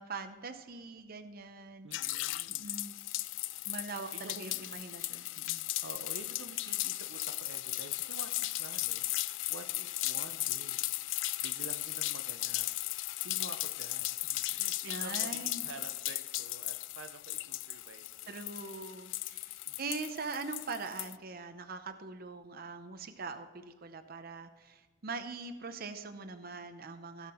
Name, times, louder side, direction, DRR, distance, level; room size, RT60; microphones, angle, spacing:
voice 1, 0.0-2.3 2.6-3.0 3.7-5.6 14.8-15.7 18.3-27.3, right 4 dB, 50° right, 8 dB, 0.7 m, -42 dB
voice 2, 1.8-2.8 4.1-4.8 5.8-12.7 13.0-18.5 19.7-19.8, right 3 dB, 85° right, 8 dB, 0.7 m, -50 dB
sound 1, 1.9-21.2, left 18 dB, 75° left, 0.3 m, -36 dB
16.0 x 5.9 x 4.4 m, 1.4 s
head